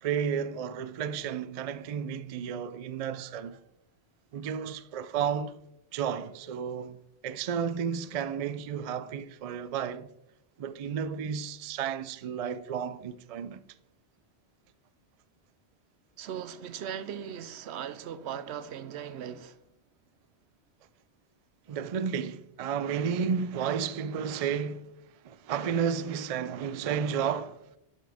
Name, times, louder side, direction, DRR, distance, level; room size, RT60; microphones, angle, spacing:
voice 1, 0.0-3.6 4.3-5.6 5.9-10.1 10.6-13.6 21.7-24.9 25.2-27.6, right 7 dB, 60° right, 0.4 m, -32 dB
voice 2, 16.2-19.6, right 9 dB, 80° right, 0.9 m, -38 dB
11.5 x 5.7 x 3.4 m
omnidirectional pair, 1.1 m